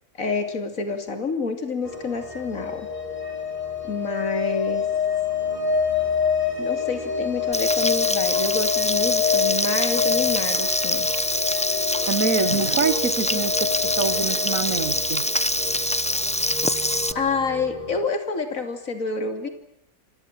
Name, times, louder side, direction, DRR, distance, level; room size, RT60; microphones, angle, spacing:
voice 1, 0.1-2.9 3.8-4.8 6.6-11.1 17.1-19.5, left 4 dB, 70° left, 3.2 m, -28 dB
sound 1, 1.8-18.0, left 6 dB, 30° left, 5.0 m, -27 dB
Frying (food), 7.5-17.1, left 1 dB, 5° left, 0.8 m, -25 dB
voice 2, 12.1-15.2, right 5 dB, 75° right, 2.0 m, -26 dB
29.0 x 25.5 x 7.5 m
omnidirectional pair, 1.4 m